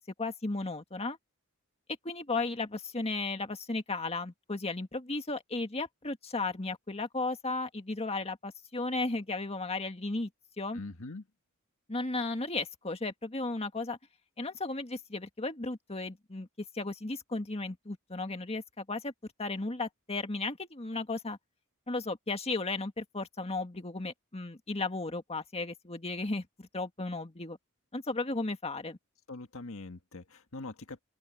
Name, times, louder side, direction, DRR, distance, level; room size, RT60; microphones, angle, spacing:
voice 1, 0.2-1.2 2.0-10.3 10.6-10.8 11.9-14.0 14.4-16.5 16.7-19.1 19.4-21.4 21.9-27.6 27.9-29.0, left 3 dB, 30° left, 1.8 m, -35 dB
voice 2, 10.7-11.2 29.3-31.0, left 2 dB, 70° left, 1.7 m, -43 dB
open air
head